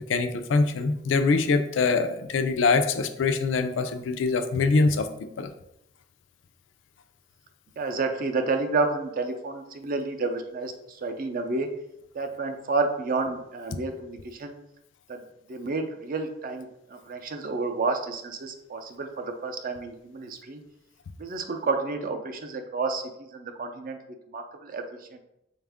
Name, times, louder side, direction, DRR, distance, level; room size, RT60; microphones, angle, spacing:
voice 1, 0.1-5.1 5.4-5.5, left 4 dB, 75° left, 8 dB, 0.4 m, -23 dB
voice 2, 7.8-11.7 12.1-14.6 15.1-15.2 15.5-20.6 21.2-23.0 23.3-24.0 24.3-24.8 25.1-25.2, right 3 dB, 50° right, 6 dB, 0.4 m, -30 dB
4.3 x 2.4 x 3.4 m, 0.81 s
head